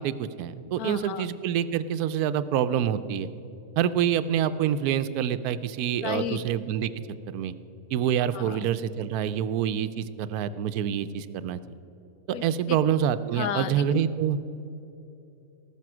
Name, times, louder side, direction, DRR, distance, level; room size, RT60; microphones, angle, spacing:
voice 1, 0.0-3.3 3.8-6.9 7.3-7.5 7.9-11.6 12.3-14.4, right 9 dB, 85° right, 13 dB, 1.1 m, -26 dB
voice 2, 0.8-1.3 6.0-6.4 8.3-8.7 12.3-12.8 13.3-14.0, left 9 dB, 80° left, 12 dB, 1.1 m, -33 dB
18.0 x 6.9 x 6.0 m, 2.9 s
omnidirectional pair, 1.6 m